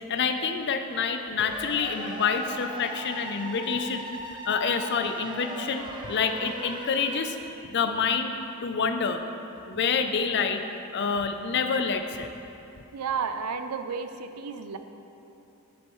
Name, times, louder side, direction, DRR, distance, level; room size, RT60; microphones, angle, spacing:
voice 1, 0.1-7.4 7.7-9.2 9.7-10.6 10.9-12.3, left 5 dB, 50° left, 7 dB, 0.5 m, -27 dB
sound 1, 1.4-7.2, right 1 dB, 20° right, 0.6 m, -39 dB
voice 2, 12.9-14.8, right 5 dB, 85° right, 9 dB, 0.5 m, -32 dB
10.0 x 7.6 x 3.1 m, 2.9 s
head